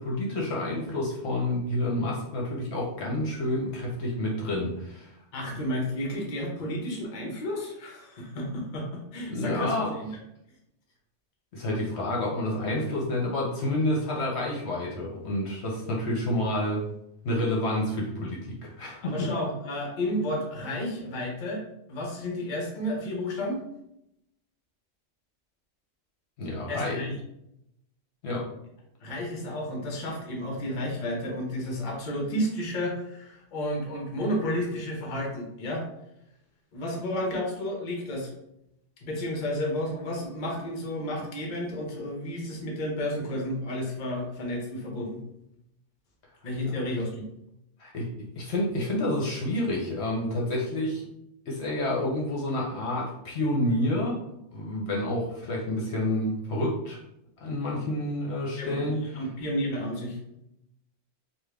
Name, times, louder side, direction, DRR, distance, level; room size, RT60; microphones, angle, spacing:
voice 1, 0.0-5.1 5.5-5.6 9.3-10.0 11.5-16.8 17.2-19.3 26.4-27.0 28.2-28.5 47.8-48.1 48.4-51.0 51.5-54.2 54.5-57.0 57.4-59.2, left 1 dB, 65° left, -2 dB, 1.0 m, -29 dB
voice 2, 5.3-9.7 10.0-10.1 19.0-21.6 21.9-23.6 26.7-27.1 29.0-35.8 36.7-38.3 39.0-45.2 46.4-47.2 58.6-60.2, left 1 dB, 45° left, 0 dB, 0.8 m, -32 dB
3.5 x 2.3 x 3.3 m, 0.81 s
omnidirectional pair, 1.2 m